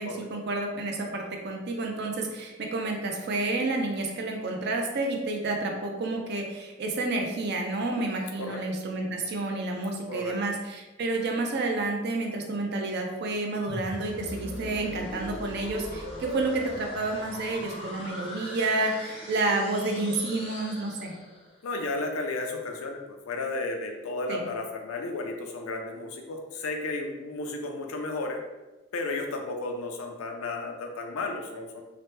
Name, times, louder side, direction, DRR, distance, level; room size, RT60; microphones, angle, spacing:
voice 1, 0.0-21.1 24.3-24.4, right 2 dB, 50° right, 2 dB, 0.4 m, -30 dB
voice 2, 10.1-10.4 21.6-23.0 23.3-28.4 28.9-31.8, left 2 dB, 90° left, 3 dB, 0.5 m, -33 dB
sound 1, 13.7-21.6, equal, 25° left, 0.5 m, -40 dB
2.8 x 2.1 x 3.1 m, 1.1 s
head